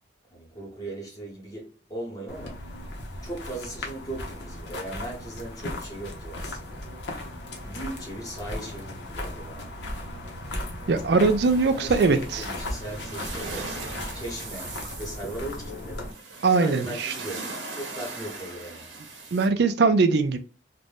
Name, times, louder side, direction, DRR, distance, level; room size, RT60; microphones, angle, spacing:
voice 1, 0.3-2.7 3.2-6.8 7.6-9.7 11.7-13.8 14.1-16.1 16.5-18.9, right 1 dB, 20° left, 0.9 m, -38 dB
sound 1, 2.3-16.1, left 1 dB, 70° left, 0.6 m, -37 dB
voice 2, 10.9-12.4 16.4-17.1 19.3-20.4, right 4 dB, 60° right, 0.4 m, -21 dB
sound 2, 11.4-19.5, right 3 dB, 75° right, 0.8 m, -40 dB
2.5 x 2.1 x 3.3 m
head